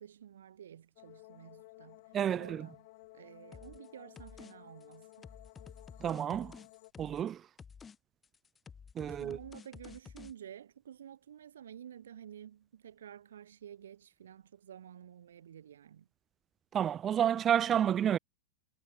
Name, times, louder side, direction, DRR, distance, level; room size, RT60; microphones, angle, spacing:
voice 1, 0.0-2.0 2.3-2.9 3.1-5.3 9.1-16.1, right 9 dB, 65° right, 3.2 m, -51 dB
sound 1, 1.0-6.9, left 22 dB, 50° left, 4.4 m, -56 dB
voice 2, 2.1-2.7 6.0-6.6 7.0-7.4 9.0-9.4 16.7-18.2, right 9 dB, 25° right, 0.7 m, -30 dB
sound 2, 3.5-3.9 4.2-4.5 4.8-7.3 7.6-8.0 8.2-10.3, left 6 dB, 20° left, 1.4 m, -51 dB
figure-of-eight pair, 90°, 0 cm